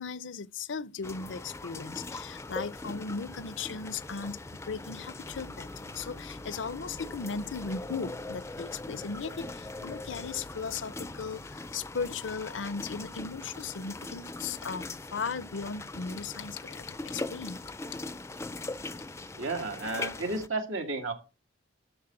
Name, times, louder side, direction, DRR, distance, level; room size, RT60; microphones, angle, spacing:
voice 1, 0.0-17.6, left 5 dB, 70° left, 0.6 m, -37 dB
sound 1, 1.0-20.5, left 2 dB, 15° left, 0.4 m, -41 dB
sound 2, 5.3-10.6, equal, 65° right, 4.9 m, -54 dB
voice 2, 19.3-21.1, right 2 dB, 85° right, 2.2 m, -32 dB
13.0 x 4.4 x 7.6 m
head